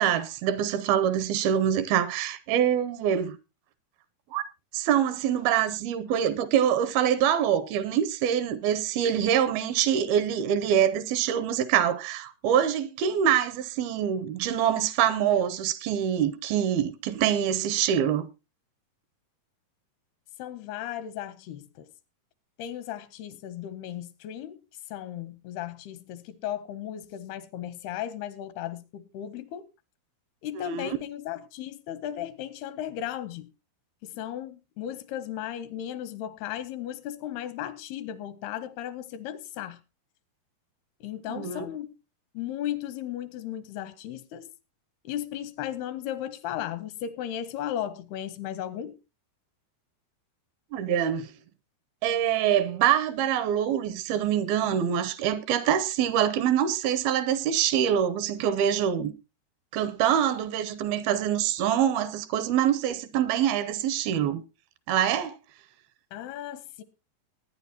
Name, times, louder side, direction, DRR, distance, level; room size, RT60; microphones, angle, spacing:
voice 1, 0.0-3.4 4.3-4.4 4.7-18.3 30.6-30.9 41.3-41.7 50.7-51.3 52.0-59.1 59.7-64.4 64.9-65.4, right 9 dB, 80° right, 2.5 m, -25 dB
voice 2, 20.4-21.9 22.6-24.6 24.9-29.7 30.4-33.5 34.0-39.8 41.0-42.0 42.3-44.5 45.0-49.0 66.1-66.8, left 11 dB, 85° left, 2.8 m, -36 dB
20.5 x 9.7 x 2.8 m
omnidirectional pair, 4.6 m